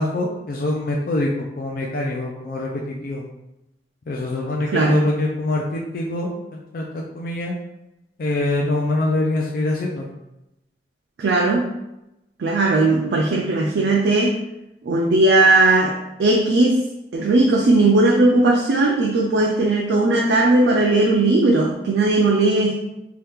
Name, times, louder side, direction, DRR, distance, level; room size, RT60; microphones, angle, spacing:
voice 1, 0.0-3.2 4.1-7.6 8.2-10.1, left 2 dB, 50° left, -1 dB, 0.4 m, -24 dB
voice 2, 4.7-5.1 11.2-11.7 12.4-14.4 14.8-16.8 17.1-22.8, right 2 dB, 75° right, 0 dB, 0.4 m, -17 dB
2.8 x 2.3 x 3.4 m, 0.91 s
head